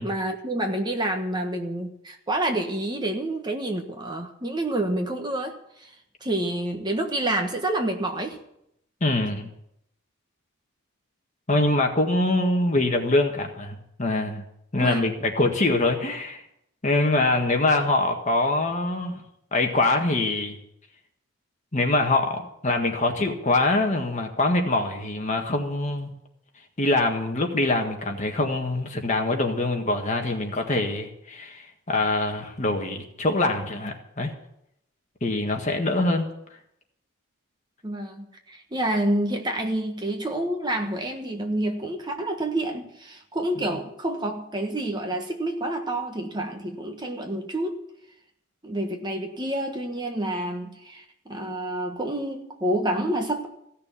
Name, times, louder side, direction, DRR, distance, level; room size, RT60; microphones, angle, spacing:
voice 1, 0.0-5.9 6.2-8.4 14.8-15.1 37.8-47.8 48.6-53.5, right 1 dB, 20° right, 4 dB, 1.4 m, -28 dB
voice 2, 9.0-9.5 11.5-14.4 14.7-16.4 16.8-19.2 19.5-20.6 21.7-26.1 26.8-34.3 35.2-36.3, left 2 dB, 35° left, 3 dB, 1.7 m, -24 dB
16.0 x 6.7 x 9.8 m, 0.77 s
head